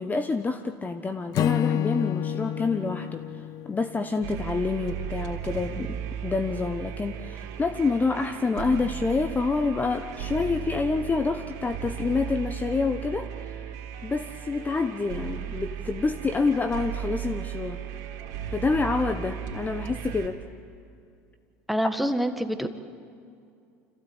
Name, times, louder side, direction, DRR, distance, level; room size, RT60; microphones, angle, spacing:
voice 1, 0.0-3.2 3.6-13.5 14.0-17.8 18.5-20.4, left 4 dB, 20° left, 8 dB, 1.0 m, -27 dB
Acoustic guitar / Strum, 1.3-4.7, left 11 dB, 50° left, 0.5 m, -29 dB
sound 1, 4.2-20.3, right 9 dB, 70° right, 3.2 m, -36 dB
voice 2, 21.7-22.7, equal, ahead, 7 dB, 1.6 m, -26 dB
26.0 x 15.5 x 8.9 m, 2.4 s
hypercardioid pair, 80°, 8 cm